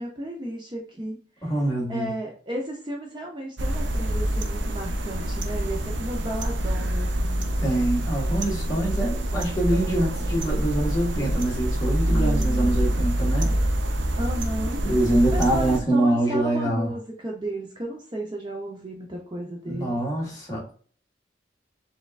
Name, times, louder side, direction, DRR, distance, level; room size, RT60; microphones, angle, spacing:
voice 1, 0.0-1.5 1.9-7.5 12.1-13.2 14.2-14.8 15.3-20.0, right 1 dB, 25° right, 0 dB, 0.7 m, -34 dB
voice 2, 1.4-2.1 7.6-13.5 14.8-16.9 19.6-20.7, right 1 dB, 20° left, -4 dB, 1.8 m, -25 dB
sound 1, 3.6-15.8, right 1 dB, 85° right, 0.6 m, -26 dB
4.3 x 3.6 x 2.4 m, 0.44 s
head